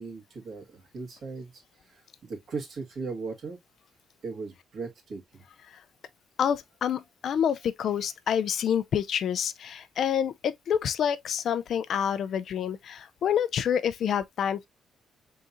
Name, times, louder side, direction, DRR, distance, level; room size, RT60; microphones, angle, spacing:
voice 1, 0.0-1.6 1.9-3.6 4.2-5.4, right 4 dB, 60° right, 1.8 m, -38 dB
voice 2, 6.4-14.7, left 8 dB, 65° left, 0.4 m, -28 dB
4.2 x 3.7 x 2.6 m
cardioid pair, 90°, 0 cm